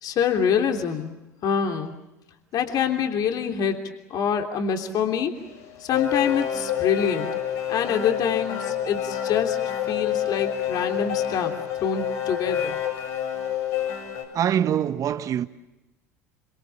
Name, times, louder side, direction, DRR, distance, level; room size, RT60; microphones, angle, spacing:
voice 1, 0.0-1.1 1.4-1.9 2.5-5.3 5.8-7.3 7.7-9.6 9.9-11.5 11.8-12.8, left 7 dB, 50° left, 3.2 m, -25 dB
sound 1, 5.4-14.2, left 10 dB, 70° left, 7.1 m, -28 dB
voice 2, 14.3-15.5, right 10 dB, 40° right, 1.2 m, -24 dB
26.5 x 25.0 x 7.3 m
hypercardioid pair, 70°, 8 cm